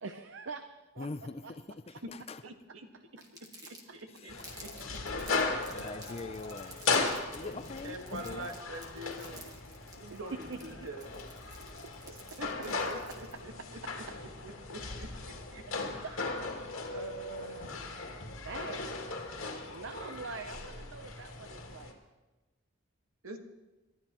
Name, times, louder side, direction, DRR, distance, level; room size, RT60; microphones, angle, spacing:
voice 1, 0.0-0.6 0.9-2.0 3.2-3.3 3.7-4.0 5.1-5.2 7.4-7.6 8.9-9.2 10.1-10.9 11.8-11.9 12.3-12.4 13.6-13.9 15.7-15.8 16.0-16.3 18.4-19.0 19.6-22.0, right 4 dB, 65° right, 0.7 m, -45 dB
voice 2, 1.0-1.4 2.3-2.4 4.2-4.4 5.7-8.0 8.2-8.5, left 3 dB, 30° left, 0.5 m, -41 dB
voice 3, 2.4-2.9 3.7-5.2 5.7-5.8 6.6-6.7 7.8-9.5 10.0-11.2 12.1-14.0 14.4-15.6 15.9-16.1 16.9-18.1 23.2-23.4, right 1 dB, 80° right, 1.6 m, -45 dB
Crumpling crinkling, 3.2-13.4, right 2 dB, 20° right, 1.8 m, -52 dB
sound 1, 4.3-21.9, left 3 dB, 70° left, 2.3 m, -37 dB
28.5 x 12.5 x 3.0 m
head